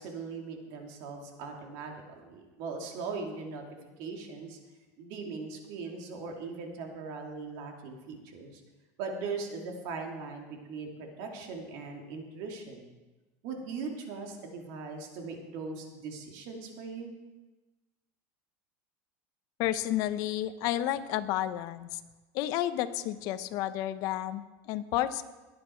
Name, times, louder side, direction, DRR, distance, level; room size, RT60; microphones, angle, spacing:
voice 1, 0.0-3.6 4.0-4.6 5.0-8.6 9.0-12.9 13.4-17.1, right 4 dB, 60° right, 2 dB, 2.7 m, -40 dB
voice 2, 19.6-22.0 22.3-25.2, left 13 dB, 55° left, 11 dB, 0.8 m, -31 dB
19.0 x 9.9 x 4.5 m, 1.2 s
supercardioid pair, 150°, 8 cm